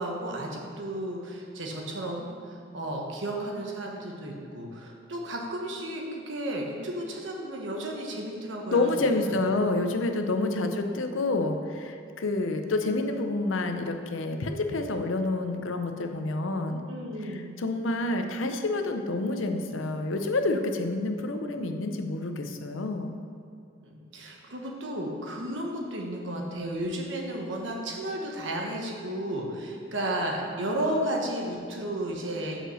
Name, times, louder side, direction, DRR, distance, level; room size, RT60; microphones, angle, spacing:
voice 1, 0.0-9.3 10.4-10.8 16.9-17.6 20.7-20.9 23.8-32.6, right 1 dB, 70° right, 0 dB, 1.2 m, -33 dB
voice 2, 8.7-16.8 17.2-23.1, left 2 dB, 80° left, 6 dB, 0.6 m, -28 dB
5.9 x 5.5 x 6.3 m, 2.4 s
head